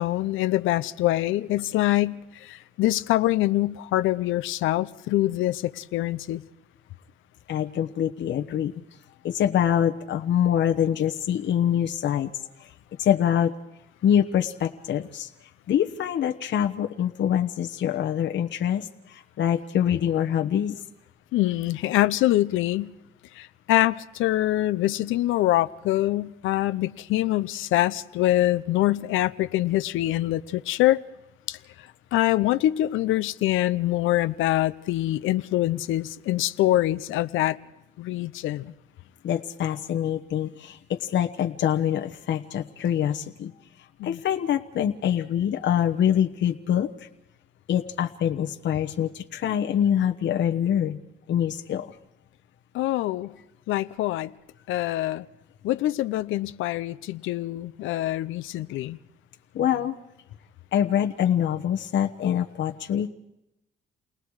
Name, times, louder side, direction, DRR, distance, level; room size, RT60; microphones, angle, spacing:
voice 1, 0.0-6.4 21.3-22.9 23.4-31.0 31.5-31.6 32.1-37.6 38.0-38.7 44.0-44.2 52.7-53.3 53.7-54.3 54.7-55.3 55.6-59.0, left 15 dB, 90° left, 0.7 m, -24 dB
voice 2, 7.5-8.7 9.2-12.3 12.6-12.7 13.0-13.5 14.0-15.3 15.7-20.8 39.2-43.5 44.0-47.1 47.7-51.0 51.3-51.9 59.5-60.0 60.7-63.1, left 9 dB, 65° left, 1.1 m, -25 dB
29.5 x 19.5 x 4.8 m
cardioid pair, 90°, 20 cm